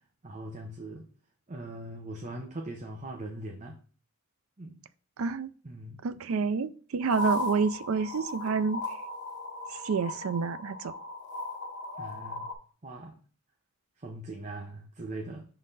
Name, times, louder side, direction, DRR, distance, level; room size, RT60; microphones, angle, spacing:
voice 1, 0.2-1.0 1.5-3.8 4.6-4.8 5.6-6.0 12.0-12.5 12.8-13.2 14.0-15.4, right 1 dB, 35° right, 0.8 m, -40 dB
voice 2, 5.2-5.5 6.0-8.9 9.7-10.9, right 5 dB, 70° right, 0.4 m, -29 dB
sound 1, 7.1-12.5, left 1 dB, 55° left, 0.9 m, -36 dB
6.2 x 3.9 x 4.0 m
head